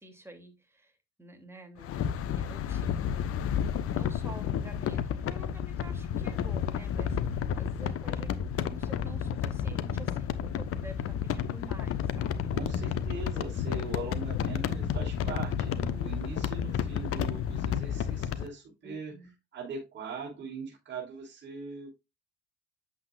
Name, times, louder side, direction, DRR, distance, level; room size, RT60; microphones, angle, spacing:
voice 1, 0.0-3.5 3.9-12.5 18.8-19.3, right 1 dB, 5° right, 2.8 m, -49 dB
sound 1, 1.8-18.5, left 8 dB, 40° left, 1.0 m, -31 dB
voice 2, 12.5-19.1 19.5-22.0, right 4 dB, 30° right, 3.7 m, -40 dB
8.6 x 7.6 x 2.4 m
figure-of-eight pair, 65°, 35 cm